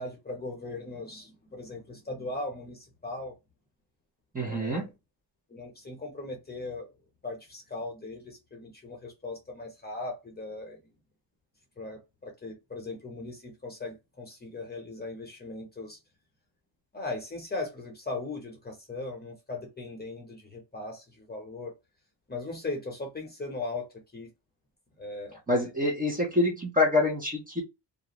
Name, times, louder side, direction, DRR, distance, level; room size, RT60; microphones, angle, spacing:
voice 1, 0.0-3.3 4.4-4.9 5.5-6.9 7.2-10.8 11.8-16.0 16.9-21.7 22.3-24.3 25.0-25.4, left 2 dB, 20° left, 1.0 m, -38 dB
voice 2, 4.3-4.8 25.5-27.6, left 2 dB, 20° right, 0.9 m, -26 dB
2.5 x 2.4 x 3.0 m
wide cardioid pair, 130°, 43 cm